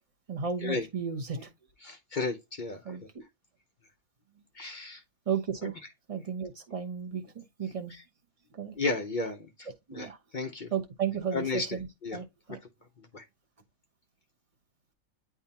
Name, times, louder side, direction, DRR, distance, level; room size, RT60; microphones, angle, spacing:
voice 1, 0.3-1.5 2.8-3.2 5.3-5.8 6.1-8.0 8.5-8.8 9.9-10.2 10.7-12.6, right 7 dB, 30° right, 0.9 m, -34 dB
voice 2, 1.8-3.0 4.5-5.0 5.6-5.7 7.9-8.0 8.8-10.1 10.3-10.7 11.3-11.7 12.0-12.2 13.0-13.2, left 3 dB, 45° left, 0.7 m, -33 dB
9.7 x 3.7 x 2.8 m
omnidirectional pair, 1.5 m